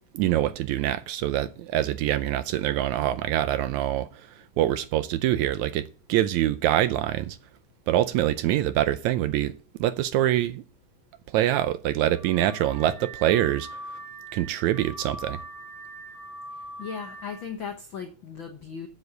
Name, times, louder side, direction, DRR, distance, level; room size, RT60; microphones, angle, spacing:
voice 1, 0.1-4.3 4.6-7.4 7.9-9.5 9.8-10.6 11.3-13.7 14.3-15.4, right 13 dB, 75° right, 1.8 m, -25 dB
Car / Alarm, 12.1-17.6, right 1 dB, 45° right, 1.6 m, -42 dB
voice 2, 16.8-18.9, left 6 dB, 70° left, 1.1 m, -37 dB
8.1 x 7.3 x 7.8 m
omnidirectional pair, 3.7 m